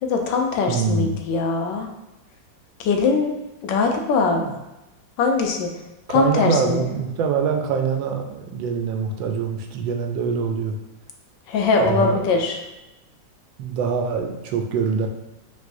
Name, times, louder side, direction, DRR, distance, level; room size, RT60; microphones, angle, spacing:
voice 1, 0.0-1.9 2.8-3.3 3.6-4.5 5.2-5.7 6.1-6.8 11.5-12.6, left 4 dB, 80° left, 3 dB, 1.3 m, -21 dB
voice 2, 0.7-1.2 4.2-4.5 6.1-10.8 11.8-12.2 13.6-15.1, right 5 dB, 90° right, 4 dB, 1.4 m, -24 dB
5.3 x 3.1 x 2.6 m, 0.99 s
omnidirectional pair, 2.0 m